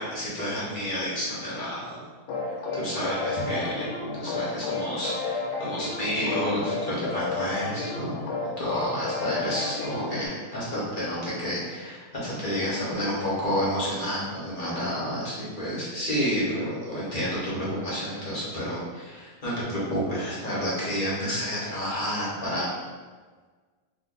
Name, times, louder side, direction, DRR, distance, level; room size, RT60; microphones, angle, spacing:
voice 1, 0.0-2.0 2.4-3.9 4.2-8.2 8.6-22.7, equal, 35° left, -8 dB, 0.9 m, -30 dB
sound 1, 2.3-10.3, left 3 dB, 75° left, 1.2 m, -32 dB
2.6 x 2.5 x 3.7 m, 1.4 s
omnidirectional pair, 1.9 m